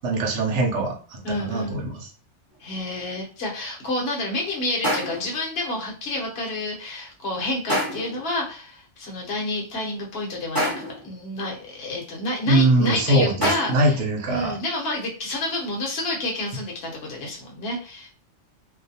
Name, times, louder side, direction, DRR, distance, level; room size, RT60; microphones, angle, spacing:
voice 1, 0.0-2.1 12.4-14.6, right 1 dB, 75° right, 1 dB, 0.9 m, -22 dB
voice 2, 1.2-1.8 2.6-10.7 11.0-14.0 14.3-18.1, left 1 dB, 60° left, -1 dB, 1.0 m, -29 dB
sound 1, 2.5-2.6 4.8-5.4 7.7-8.3 10.5-11.1 13.4-14.0, equal, 20° left, 0.9 m, -26 dB
2.5 x 2.2 x 2.6 m, 0.39 s
omnidirectional pair, 1.2 m